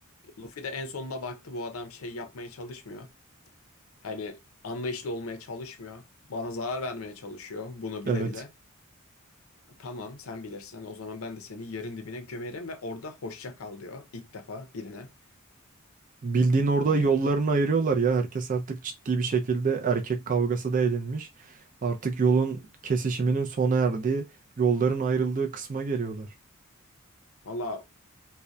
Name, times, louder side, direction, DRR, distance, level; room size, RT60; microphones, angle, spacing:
voice 1, 0.2-3.1 4.0-4.4 4.6-8.5 9.7-15.1 16.8-17.1 27.4-27.9, left 2 dB, 85° left, 0.6 m, -37 dB
voice 2, 16.2-24.3 24.6-26.3, right 4 dB, 40° right, 0.4 m, -25 dB
2.6 x 2.1 x 2.2 m
head